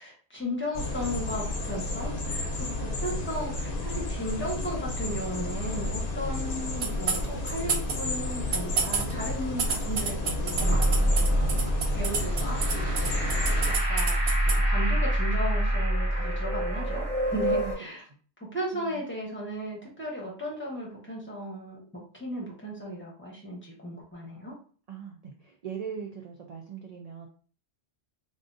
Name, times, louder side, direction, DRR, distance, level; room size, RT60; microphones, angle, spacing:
voice 1, 0.0-11.4 11.9-13.1 13.6-14.2 14.7-18.0 18.5-24.5, equal, 10° left, -4 dB, 0.9 m, -36 dB
sound 1, 0.7-13.8, left 2 dB, 60° left, 0.9 m, -32 dB
sound 2, 6.8-7.9 8.3-14.6, right 5 dB, 85° right, 0.9 m, -28 dB
sound 3, 10.6-17.7, right 1 dB, 30° right, 1.6 m, -26 dB
voice 2, 24.9-27.3, right 7 dB, 55° right, 1 dB, 0.4 m, -39 dB
3.6 x 2.5 x 2.5 m, 0.41 s
omnidirectional pair, 1.1 m